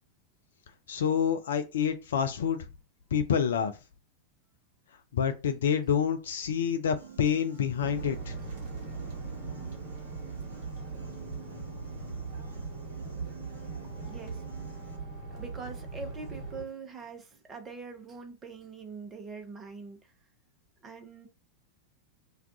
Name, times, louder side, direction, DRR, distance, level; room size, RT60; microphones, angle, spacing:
voice 1, 0.9-2.6 3.1-3.7 5.1-8.3, left 7 dB, 65° left, 0.4 m, -27 dB
Piano, 7.0-15.0, right 7 dB, 75° right, 0.7 m, -52 dB
sound 1, 7.8-16.6, right 4 dB, 50° right, 1.0 m, -39 dB
voice 2, 12.3-12.6 14.0-20.1 20.8-21.3, right 4 dB, 20° right, 0.7 m, -44 dB
2.4 x 2.3 x 3.7 m
figure-of-eight pair, 90°, 0 cm